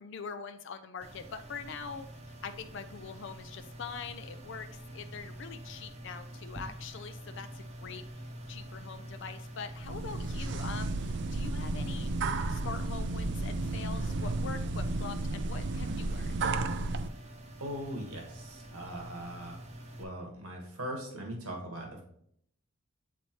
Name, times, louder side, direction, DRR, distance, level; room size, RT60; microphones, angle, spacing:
voice 1, 0.0-2.1 2.4-8.0 8.5-12.1 12.5-16.3, left 5 dB, 55° left, 9 dB, 0.4 m, -43 dB
sound 1, 1.0-20.0, right 1 dB, 30° right, 0.9 m, -47 dB
environment room, 9.8-17.1, right 2 dB, 55° right, 0.4 m, -33 dB
voice 2, 17.6-19.6 20.0-22.0, right 1 dB, 90° right, 1 dB, 1.6 m, -40 dB
8.3 x 4.2 x 3.1 m, 0.67 s
head